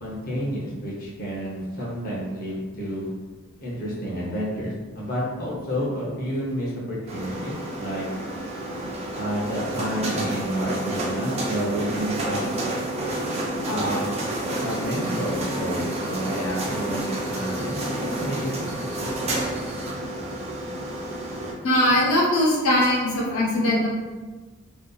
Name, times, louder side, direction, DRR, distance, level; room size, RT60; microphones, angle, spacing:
voice 1, 0.0-3.1 3.6-8.1 9.1-12.4 13.7-14.1 14.6-18.7, equal, 40° left, -6 dB, 0.7 m, -30 dB
sound 1, 7.1-21.5, right 1 dB, 30° right, 0.4 m, -29 dB
voice 2, 21.6-23.9, left 1 dB, 80° left, -4 dB, 0.7 m, -20 dB
2.6 x 2.3 x 2.2 m, 1.3 s
head